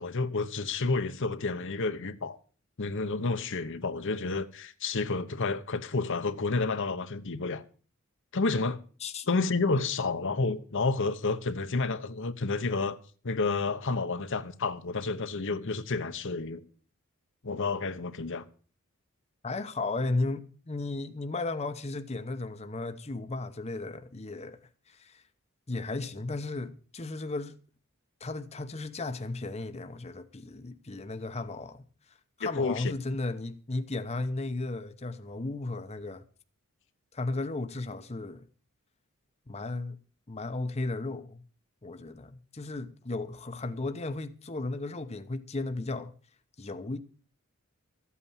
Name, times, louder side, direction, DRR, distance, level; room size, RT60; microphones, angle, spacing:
voice 1, 0.0-2.4 2.8-7.6 8.3-8.8 9.3-13.0 13.2-16.6 17.4-18.4 32.4-32.9, left 3 dB, 60° left, 0.9 m, -30 dB
voice 2, 19.4-24.6 24.9-25.2 25.7-27.5 28.2-31.8 32.4-36.2 37.1-38.4 39.5-40.0 40.3-41.4 41.8-46.1 46.6-47.0, left 2 dB, 30° left, 0.8 m, -35 dB
14.0 x 8.5 x 7.2 m
head